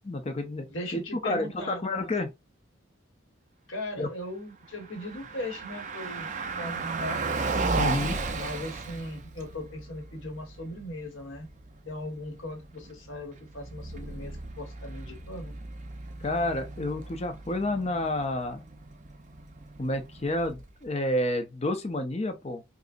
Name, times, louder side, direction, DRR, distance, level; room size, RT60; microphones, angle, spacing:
voice 1, 0.0-0.7 0.9-2.3 4.0-4.1 7.8-8.2 16.2-18.6 19.8-22.6, left 1 dB, 30° left, 0.5 m, -30 dB
voice 2, 0.7-1.8 3.7-6.3 6.6-7.3 8.3-11.5 11.9-15.5, left 1 dB, 70° left, 1.1 m, -38 dB
Car passing by, 4.7-20.8, right 3 dB, 35° right, 0.5 m, -36 dB
5.0 x 2.0 x 2.5 m
head